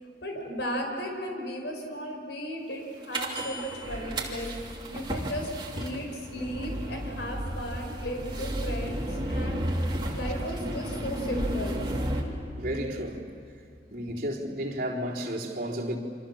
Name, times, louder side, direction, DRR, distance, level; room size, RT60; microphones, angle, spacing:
voice 1, 0.2-4.5 4.9-5.5 5.8-9.6 10.1-11.8, equal, 80° left, 5.3 m, -35 dB
sound 1, 3.1-12.2, equal, 25° right, 2.7 m, -32 dB
voice 2, 9.4-9.7 12.6-13.2 13.9-16.0, equal, 50° right, 4.0 m, -33 dB
28.5 x 25.5 x 7.3 m
head